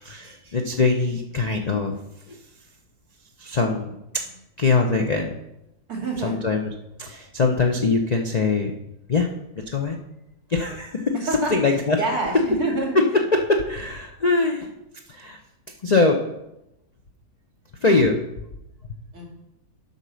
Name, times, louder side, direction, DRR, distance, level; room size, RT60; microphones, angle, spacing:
voice 1, 0.0-1.9 2.3-2.4 3.4-4.0 4.6-5.4 6.2-6.7 7.0-8.7 9.1-9.3 9.6-10.0 10.5-11.1 11.5-12.0 12.9-13.0 13.3-14.7 15.1-15.4 15.8-16.2 17.8-18.5, left 3 dB, 80° left, 2 dB, 0.3 m, -22 dB
voice 2, 5.9-6.3 11.3-12.9 19.1-19.3, right 3 dB, 60° right, 0 dB, 2.9 m, -27 dB
8.2 x 5.4 x 6.2 m, 0.88 s
omnidirectional pair, 1.8 m